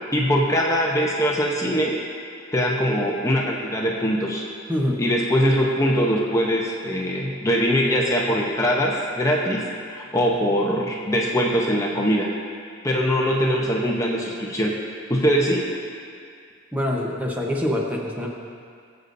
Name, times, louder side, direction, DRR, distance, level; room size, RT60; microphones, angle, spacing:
voice 1, 0.1-2.0 2.5-4.4 5.0-9.6 9.9-12.3 12.8-14.8 15.1-15.7, equal, 15° left, -2 dB, 0.8 m, -22 dB
voice 2, 4.7-5.0 16.7-18.3, left 1 dB, 10° right, -2 dB, 0.9 m, -25 dB
20.0 x 8.0 x 2.6 m, 2.2 s
head